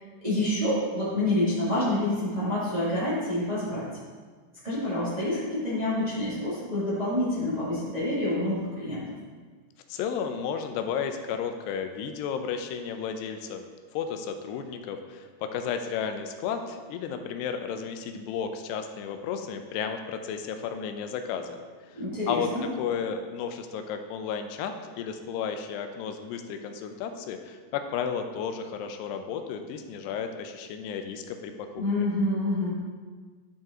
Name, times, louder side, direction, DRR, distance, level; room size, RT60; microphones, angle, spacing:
voice 1, 0.2-3.8 4.6-9.1 21.9-22.6 31.8-32.7, left 1 dB, 40° right, -10 dB, 0.5 m, -27 dB
voice 2, 9.9-13.7 13.9-21.6 21.9-22.0 22.3-22.5 22.8-31.8, left 7 dB, 85° left, 6 dB, 2.7 m, -33 dB
12.0 x 5.3 x 3.7 m, 1.5 s
omnidirectional pair, 4.9 m